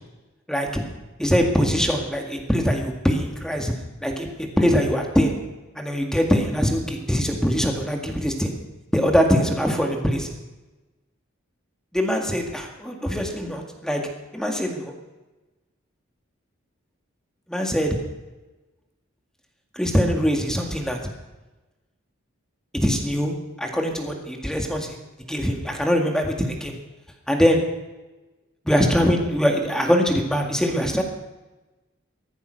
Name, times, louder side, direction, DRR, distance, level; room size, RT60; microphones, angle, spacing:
voice 1, 0.5-0.8 1.2-3.7 4.0-5.4 5.8-8.5 8.9-10.3 11.9-14.0 14.3-14.9 17.5-18.0 19.7-21.0 22.8-25.0 25.3-26.8 27.3-27.6 28.7-31.0, equal, 5° left, 2 dB, 1.9 m, -22 dB
15.5 x 14.0 x 6.4 m, 1.1 s
head